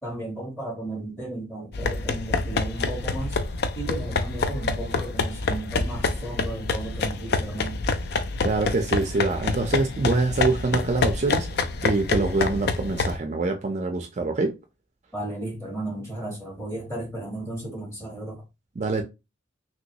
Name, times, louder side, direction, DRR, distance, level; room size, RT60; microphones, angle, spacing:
voice 1, 0.0-7.8 15.1-18.4, right 1 dB, 15° left, 1.8 m, -34 dB
sound 1, 1.7-13.2, left 3 dB, 60° left, 0.4 m, -27 dB
voice 2, 8.4-11.5 11.8-14.5 18.8-19.0, right 3 dB, 40° right, 0.4 m, -25 dB
3.0 x 3.0 x 2.8 m
head